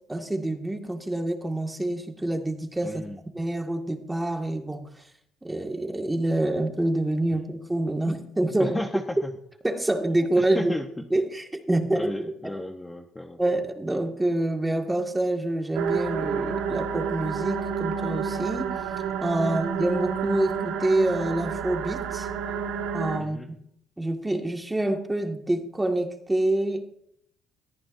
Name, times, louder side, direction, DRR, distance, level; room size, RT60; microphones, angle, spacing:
voice 1, 0.1-3.0 3.3-4.9 5.4-8.8 9.6-10.7 11.1-12.5 13.4-18.7 19.2-22.3 22.9-23.4 24.0-26.8, right 1 dB, 10° right, 3 dB, 2.0 m, -26 dB
voice 2, 2.8-3.2 8.6-9.3 10.4-11.1 11.9-13.4 13.9-14.0 19.4-19.6 23.2-23.5, left 1 dB, 10° left, 3 dB, 1.0 m, -34 dB
sound 1, 15.7-23.2, right 7 dB, 85° right, 1.8 m, -30 dB
20.5 x 14.0 x 2.7 m, 0.72 s
cardioid pair, 100°, 0 cm